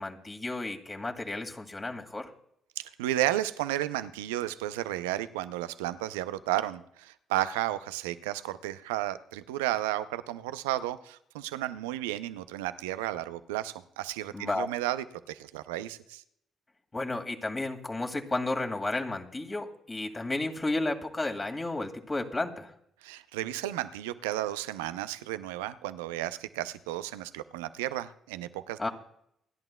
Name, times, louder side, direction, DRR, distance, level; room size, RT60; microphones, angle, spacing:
voice 1, 0.0-2.3 14.3-14.7 16.9-22.7 28.8-28.9, left 2 dB, 25° left, 2 dB, 2.2 m, -32 dB
voice 2, 2.8-16.2 23.0-28.9, right 14 dB, 85° right, 13 dB, 0.5 m, -33 dB
29.0 x 10.5 x 2.3 m, 0.71 s
hypercardioid pair, 45°, 0 cm